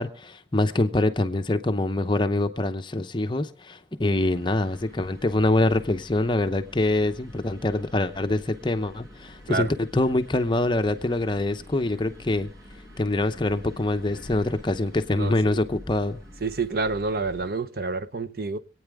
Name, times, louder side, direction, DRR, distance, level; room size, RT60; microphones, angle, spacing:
voice 1, 0.0-9.7 9.9-12.5 13.0-16.2, left 2 dB, 25° left, 0.7 m, -25 dB
sound 1, 4.1-17.5, left 1 dB, 80° right, 7.6 m, -47 dB
voice 2, 15.2-15.6 16.4-18.6, right 3 dB, 55° right, 0.7 m, -28 dB
25.5 x 9.1 x 3.6 m
head